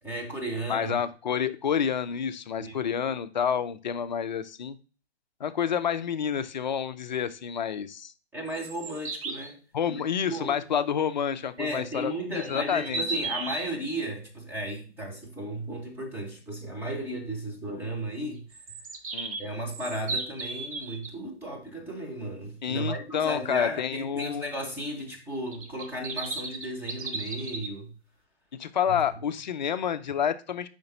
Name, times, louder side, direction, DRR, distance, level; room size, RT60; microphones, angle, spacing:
voice 1, 0.0-0.9 2.6-2.8 8.3-9.6 9.9-10.0 10.3-10.6 11.6-18.6 19.4-27.9 28.9-29.0, right 1 dB, 5° right, 0 dB, 1.0 m, -35 dB
voice 2, 0.7-4.8 5.4-8.1 9.7-13.0 19.1-19.4 22.6-24.5 28.6-30.7, left 8 dB, 45° left, 12 dB, 0.5 m, -29 dB
sound 1, 8.5-9.5 12.4-13.7 18.5-21.1 25.5-27.7, right 3 dB, 30° right, 0.8 m, -35 dB
5.1 x 3.8 x 5.4 m, 0.35 s
figure-of-eight pair, 135°, 33 cm